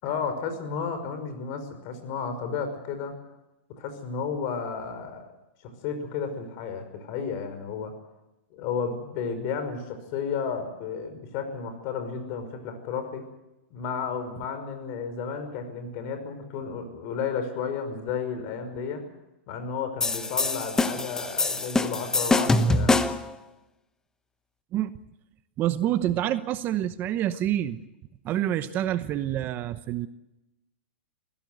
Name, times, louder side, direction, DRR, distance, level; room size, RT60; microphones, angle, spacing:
voice 1, 0.0-3.2 3.8-5.2 5.6-7.9 8.5-13.2 13.7-19.0 19.5-23.0, left 6 dB, 45° left, 9 dB, 5.6 m, -32 dB
sound 1, 20.0-23.3, left 2 dB, 10° left, 1.1 m, -24 dB
voice 2, 25.6-27.8 28.2-30.1, right 12 dB, 30° right, 12 dB, 1.0 m, -27 dB
25.5 x 16.5 x 8.2 m, 0.95 s
hypercardioid pair, 135°, 6 cm